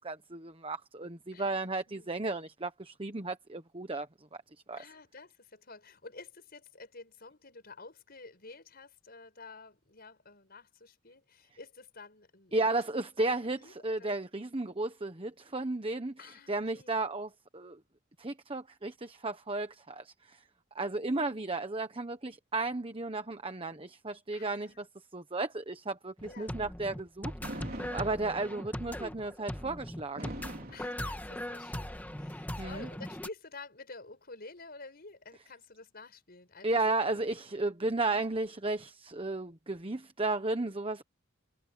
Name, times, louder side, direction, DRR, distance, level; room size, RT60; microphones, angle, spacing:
voice 1, 0.0-4.1 4.7-4.8 12.5-16.2 16.5-17.8 18.2-20.4 20.7-24.9 25.1-30.3 32.6-32.9 36.6-41.0, right 2 dB, 25° right, 1.2 m, -34 dB
voice 2, 1.3-2.1 4.7-12.8 13.2-14.2 16.2-17.0 24.3-24.8 26.2-26.6 30.7-37.0, left 3 dB, 50° left, 6.1 m, -50 dB
sound 1, 26.2-33.3, left 1 dB, 10° left, 1.6 m, -40 dB
Fireworks, 27.4-28.7 30.2-31.7, right 1 dB, 45° right, 4.0 m, -43 dB
head